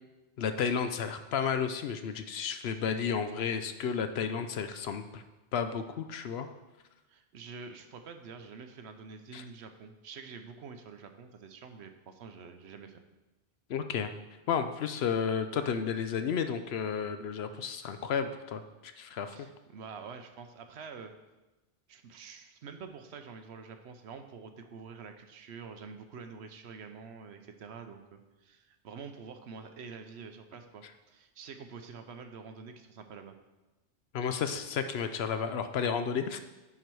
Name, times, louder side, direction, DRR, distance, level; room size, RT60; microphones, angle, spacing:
voice 1, 0.4-5.2 5.5-6.5 9.3-9.4 13.7-14.1 14.5-19.5 34.1-36.4, left 7 dB, 65° left, 9 dB, 0.8 m, -32 dB
voice 2, 7.1-13.0 19.3-21.1 21.9-33.4, right 5 dB, 70° right, 7 dB, 0.9 m, -47 dB
9.8 x 4.6 x 4.6 m, 1.1 s
omnidirectional pair, 1.2 m